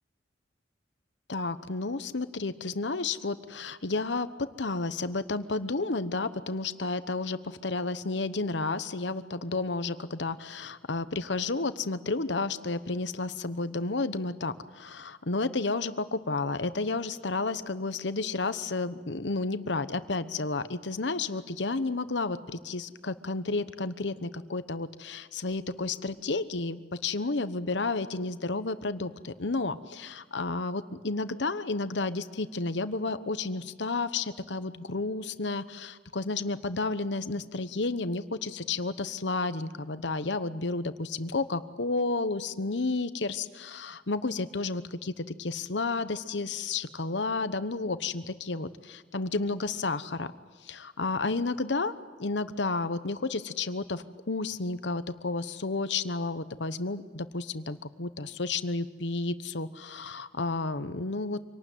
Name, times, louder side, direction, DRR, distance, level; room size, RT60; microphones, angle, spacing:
voice 1, 1.3-4.3 4.6-50.3 50.6-51.9 52.2-61.4, left 3 dB, 70° left, 12 dB, 1.1 m, -31 dB
26.0 x 18.5 x 9.3 m, 1.4 s
head